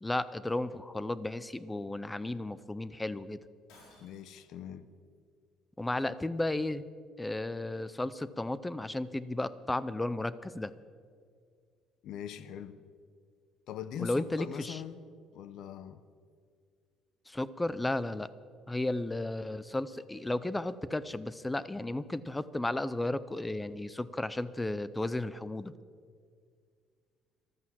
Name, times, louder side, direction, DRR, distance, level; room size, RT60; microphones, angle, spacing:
voice 1, 0.0-3.4 5.8-6.8 7.2-10.7 14.0-14.8 17.3-18.3 18.7-25.7, left 2 dB, 10° left, 0.5 m, -34 dB
Shatter, 3.7-4.5, left 2 dB, 90° left, 5.3 m, -58 dB
voice 2, 4.0-4.9 12.0-12.8 13.7-15.0 15.3-16.0, left 9 dB, 65° left, 0.9 m, -42 dB
14.0 x 12.0 x 7.5 m
cardioid pair, 135°, 0 cm